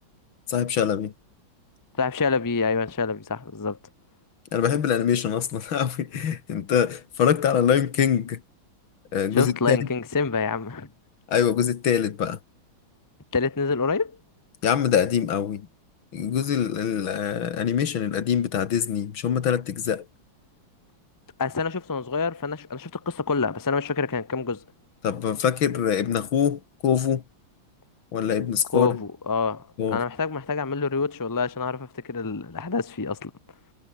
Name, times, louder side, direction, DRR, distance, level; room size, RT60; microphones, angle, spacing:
voice 1, 0.5-1.1 4.5-8.4 9.1-9.9 11.3-12.4 14.6-15.7 16.1-20.1 25.0-27.2 28.1-29.0 29.8-30.0, left 8 dB, 80° left, 2.4 m, -24 dB
voice 2, 2.0-3.8 9.3-10.9 13.3-14.2 21.4-24.6 28.7-33.3, left 4 dB, 15° left, 0.7 m, -27 dB
omnidirectional pair, 2.2 m